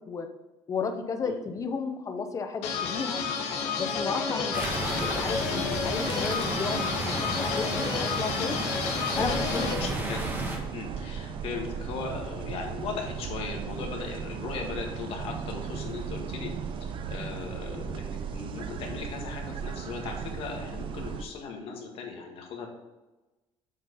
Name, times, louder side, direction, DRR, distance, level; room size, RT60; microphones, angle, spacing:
voice 1, 0.7-3.2 3.8-8.6 9.2-9.9, left 5 dB, 30° left, 6 dB, 0.8 m, -33 dB
sound 1, 2.6-9.7, left 5 dB, 85° left, 1.3 m, -31 dB
sound 2, 4.5-10.6, right 1 dB, 20° right, 1.5 m, -32 dB
sound 3, 9.1-21.2, right 7 dB, 55° right, 0.7 m, -36 dB
voice 2, 9.4-16.5 16.8-22.7, left 4 dB, 60° left, 1 dB, 1.8 m, -38 dB
7.6 x 4.3 x 5.5 m, 1.1 s
cardioid pair, 130°, 11 cm